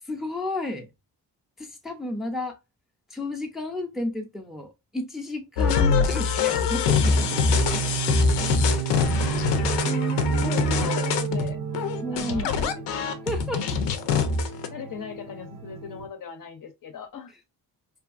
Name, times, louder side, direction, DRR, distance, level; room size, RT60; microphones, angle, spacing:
voice 1, 0.1-0.9 1.6-2.6 3.1-7.6 8.7-8.9 9.8-10.6 12.0-12.5 13.3-13.8, left 1 dB, ahead, 0.6 m, -32 dB
sound 1, 5.6-14.7, left 5 dB, 90° left, 0.6 m, -24 dB
sound 2, 6.9-16.1, right 9 dB, 65° right, 0.8 m, -31 dB
voice 2, 10.2-11.6 12.1-12.8 14.7-17.3, left 5 dB, 50° left, 0.6 m, -38 dB
2.7 x 2.4 x 2.4 m
cardioid pair, 90°, 42 cm